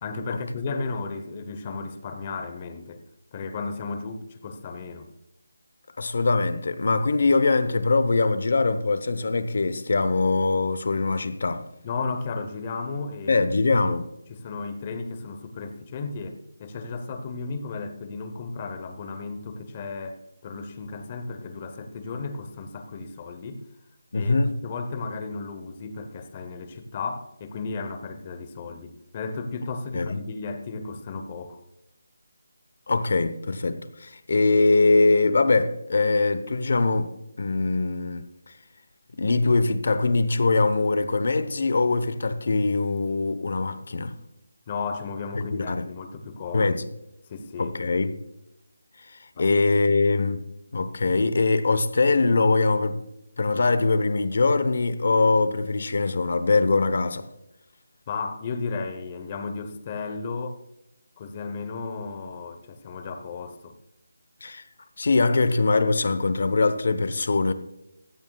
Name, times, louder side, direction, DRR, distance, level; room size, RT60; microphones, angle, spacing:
voice 1, 0.0-3.0 3.3-5.1 11.8-13.7 14.3-23.6 24.1-31.6 44.7-46.8 47.3-47.8 49.3-49.9 58.1-60.6 61.2-63.7, left 4 dB, 20° left, 0.9 m, -34 dB
voice 2, 6.0-11.7 13.3-14.1 24.1-24.5 29.9-30.2 32.9-38.2 39.2-44.1 45.3-45.9 46.5-46.9 47.6-48.2 49.4-50.4 50.7-53.0 53.4-57.3 64.4-64.6 65.0-67.5, left 3 dB, 45° left, 0.9 m, -22 dB
15.5 x 14.5 x 2.3 m
figure-of-eight pair, 175°, 0 cm